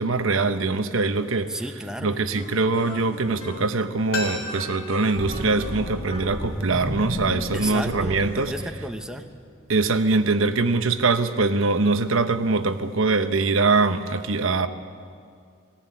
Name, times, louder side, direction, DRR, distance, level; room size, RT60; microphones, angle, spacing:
voice 1, 0.0-1.6 2.0-8.5 9.7-14.7, right 3 dB, 75° right, 0.9 m, -23 dB
voice 2, 1.5-2.2 7.5-9.3, right 1 dB, 5° right, 1.0 m, -33 dB
sound 1, 2.3-3.8 4.2-6.4, left 1 dB, 30° left, 3.1 m, -40 dB
sound 2, 4.1-6.9 7.2-7.3, left 3 dB, 85° left, 4.8 m, -36 dB
sound 3, 5.1-9.4, equal, 10° left, 2.6 m, -33 dB
19.5 x 16.5 x 9.4 m
head